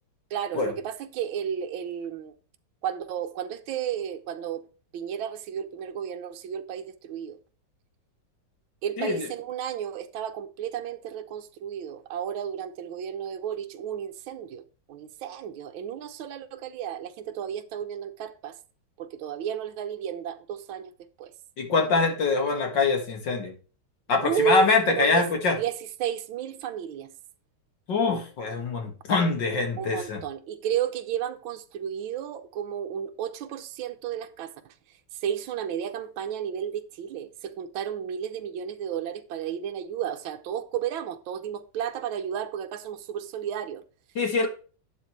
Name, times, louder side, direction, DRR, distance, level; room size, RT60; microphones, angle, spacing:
voice 1, 0.3-2.3 2.8-4.6 4.9-7.4 8.8-14.6 14.9-18.6 19.0-20.9 21.2-21.3 24.2-25.3 25.6-27.1 29.8-34.7 35.2-43.8, right 9 dB, 75° right, 1.6 m, -32 dB
voice 2, 21.6-23.5 24.1-25.6 27.9-30.2 44.2-44.5, left 4 dB, 60° left, 2.4 m, -24 dB
11.5 x 8.3 x 3.2 m
omnidirectional pair, 2.3 m